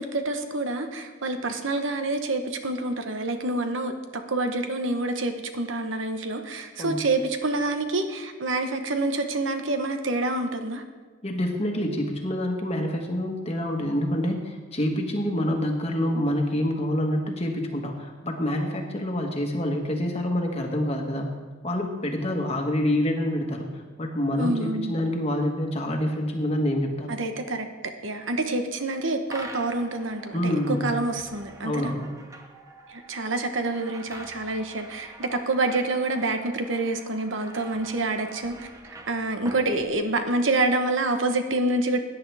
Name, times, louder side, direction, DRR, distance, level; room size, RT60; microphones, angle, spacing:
voice 1, 0.0-10.8 24.4-25.0 27.1-31.9 32.9-38.7 39.1-42.0, right 2 dB, 70° right, 6 dB, 1.1 m, -27 dB
voice 2, 11.2-21.3 21.6-23.7 24.0-27.1 30.3-30.9 31.6-32.1, left 1 dB, 30° left, 2 dB, 1.4 m, -27 dB
sound 1, 29.3-40.5, right 1 dB, 15° right, 0.8 m, -45 dB
17.0 x 10.0 x 3.4 m, 1.4 s
head